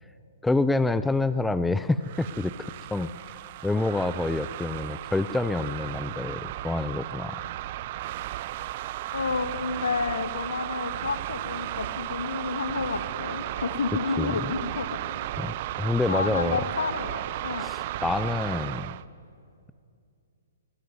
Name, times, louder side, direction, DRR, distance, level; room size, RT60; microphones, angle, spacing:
voice 1, 0.4-3.4 3.6-7.4 14.2-14.5 15.4-16.6 17.6-19.0, left 2 dB, 5° left, 14 dB, 0.7 m, -27 dB
sound 1, 2.0-19.0, right 14 dB, 45° right, 0.7 m, -35 dB
voice 2, 9.1-15.0 16.1-17.7, left 4 dB, 80° left, 10 dB, 2.0 m, -30 dB
22.0 x 22.0 x 9.4 m, 2.4 s
hypercardioid pair, 125°, 0 cm